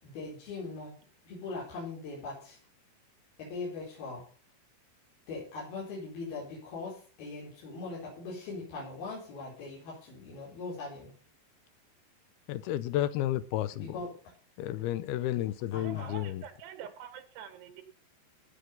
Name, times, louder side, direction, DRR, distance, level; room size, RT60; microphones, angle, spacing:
voice 1, 0.0-1.0 1.2-2.6 3.4-4.2 5.3-11.1 13.7-14.1 15.7-16.3, left 3 dB, 65° left, -5 dB, 6.2 m, -41 dB
voice 2, 12.5-14.0 14.6-16.4, left 13 dB, 80° left, 15 dB, 2.5 m, -32 dB
voice 3, 15.8-17.8, right 9 dB, 80° right, 10 dB, 3.4 m, -45 dB
16.5 x 6.5 x 5.5 m, 0.42 s
omnidirectional pair, 4.8 m